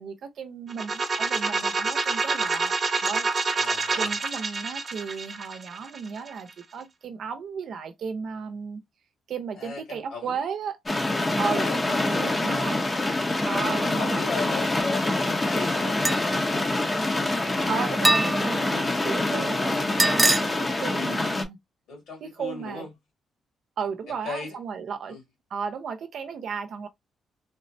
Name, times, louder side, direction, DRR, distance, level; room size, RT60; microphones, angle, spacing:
voice 1, 0.0-2.8 3.0-3.3 4.0-8.8 9.3-10.8 11.4-12.8 13.4-14.2 17.7-21.6 22.2-22.9 23.8-25.2 25.5-26.9, right 6 dB, 65° right, 0.6 m, -34 dB
sound 1, 0.7-6.5, right 4 dB, 40° right, 0.9 m, -27 dB
voice 2, 3.5-4.1 9.6-10.4 11.5-12.6 13.8-17.5 19.3-20.0 21.9-22.9 24.1-24.5 25.1-25.2, left 4 dB, 75° left, 2.1 m, -38 dB
sound 2, 10.9-21.4, left 2 dB, 25° left, 0.7 m, -25 dB
sound 3, 16.1-16.4 18.0-18.6 20.0-20.4, right 2 dB, 15° right, 0.4 m, -22 dB
3.6 x 2.1 x 2.6 m
cardioid pair, 90°, 0 cm